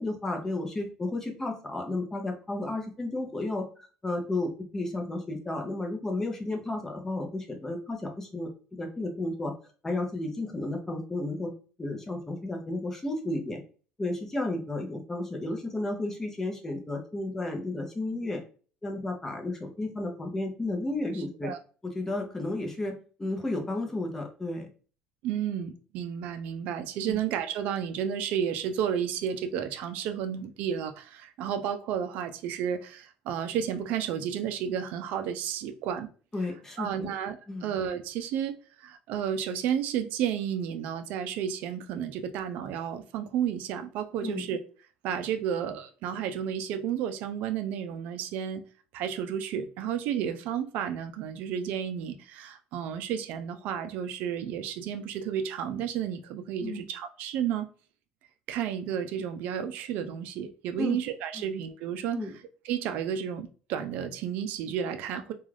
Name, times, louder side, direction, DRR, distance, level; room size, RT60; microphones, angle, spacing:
voice 1, 0.0-9.5 9.8-11.5 11.8-13.6 14.0-18.4 18.8-21.5 21.8-24.7 27.1-27.2 36.3-37.1 37.5-37.7 44.2-44.5 56.6-56.9 60.8-61.0 62.1-62.3, left 2 dB, 15° left, 0.6 m, -33 dB
voice 2, 25.2-36.1 36.8-44.6 45.0-48.6 48.9-57.7 58.5-62.2 62.6-65.3, right 9 dB, 70° right, 0.3 m, -32 dB
2.4 x 2.3 x 3.2 m
cardioid pair, 130°, 3 cm